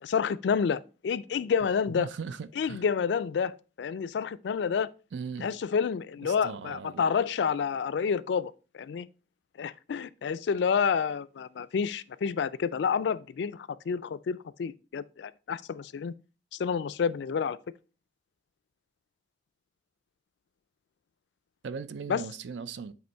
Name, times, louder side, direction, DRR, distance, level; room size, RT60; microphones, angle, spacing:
voice 1, 0.0-2.1 2.6-4.9 5.4-9.1 9.6-16.1 16.6-17.6 22.1-22.2, left 6 dB, 70° left, 0.3 m, -29 dB
voice 2, 1.9-2.8 5.1-5.5 6.2-7.2 21.6-22.9, right 5 dB, 75° right, 0.4 m, -38 dB
7.9 x 3.0 x 4.4 m
head